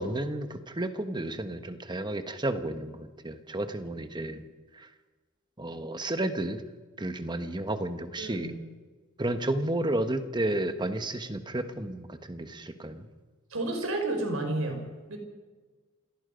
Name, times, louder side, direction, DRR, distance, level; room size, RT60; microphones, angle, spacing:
voice 1, 0.0-4.4 4.8-4.9 5.6-6.6 7.0-8.5 9.2-13.1, right 1 dB, 20° right, 9 dB, 1.3 m, -32 dB
voice 2, 8.2-8.6 13.5-15.2, right 2 dB, 80° right, 4 dB, 4.9 m, -31 dB
27.0 x 18.0 x 5.3 m, 1.3 s
head